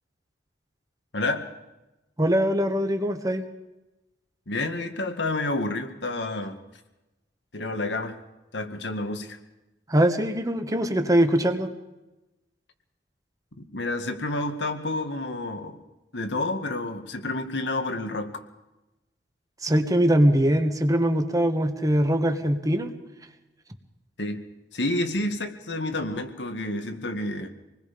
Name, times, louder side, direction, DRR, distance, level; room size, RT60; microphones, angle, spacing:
voice 1, 2.2-3.4 9.9-11.7 19.6-22.9, equal, 20° right, 7 dB, 1.6 m, -22 dB
voice 2, 4.5-6.6 7.5-8.2 8.5-9.4 13.6-15.8 16.1-18.4 24.2-24.4 24.7-27.5, left 2 dB, 75° left, 7 dB, 2.0 m, -29 dB
26.5 x 20.5 x 5.4 m, 1.0 s
head